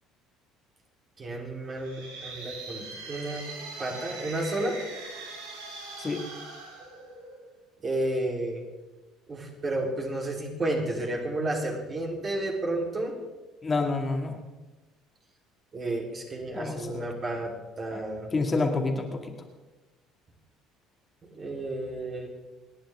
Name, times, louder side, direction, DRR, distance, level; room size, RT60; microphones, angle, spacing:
voice 1, 1.2-3.5 3.8-4.8 7.8-8.6 9.3-13.1 15.7-18.3 21.2-22.3, right 1 dB, 35° right, -1 dB, 3.9 m, -31 dB
sound 1, 1.7-7.6, right 3 dB, 75° right, 2.6 m, -42 dB
voice 2, 13.6-14.4 16.5-17.1 17.9-18.0 18.3-19.3, left 3 dB, 25° left, 2 dB, 2.3 m, -28 dB
29.5 x 10.5 x 3.8 m, 1.2 s
figure-of-eight pair, 60°, 0 cm